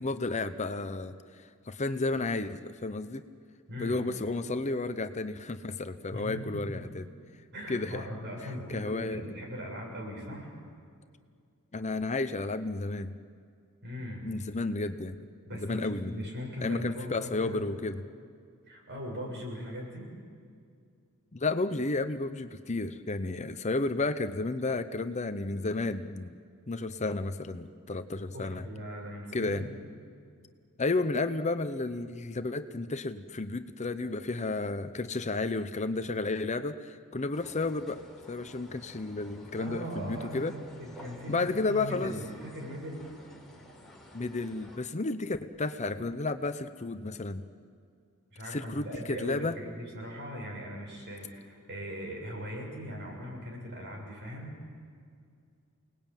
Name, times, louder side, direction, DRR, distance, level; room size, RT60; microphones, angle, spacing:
voice 1, 0.0-3.2 3.8-7.0 7.7-8.0 8.7-9.2 11.7-13.1 14.2-15.2 15.6-16.2 16.6-18.0 21.3-26.4 26.7-28.6 29.3-29.7 30.8-38.0 38.3-40.5 41.3-42.2 44.1-47.4 48.5-49.6, left 3 dB, 30° left, 10 dB, 0.8 m, -32 dB
voice 2, 3.7-4.0 6.1-7.0 7.5-10.5 13.8-14.3 15.5-17.7 18.7-20.1 28.3-29.7 39.6-43.0 48.3-54.5, equal, 50° right, 0 dB, 7.1 m, -40 dB
sound 1, 37.3-44.8, equal, ahead, 4.2 m, -52 dB
29.0 x 19.5 x 9.1 m, 2.2 s
head